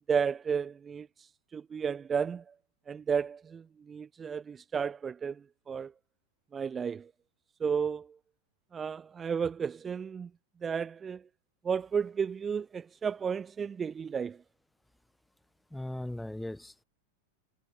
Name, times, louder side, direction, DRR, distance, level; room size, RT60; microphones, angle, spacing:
voice 1, 0.1-2.5 2.9-5.9 6.5-7.1 7.6-8.1 8.7-10.3 10.6-11.2 11.6-14.4, right 6 dB, 20° right, 2.8 m, -33 dB
voice 2, 15.7-16.8, left 1 dB, 5° left, 7.2 m, -38 dB
figure-of-eight pair, 90°, 0 cm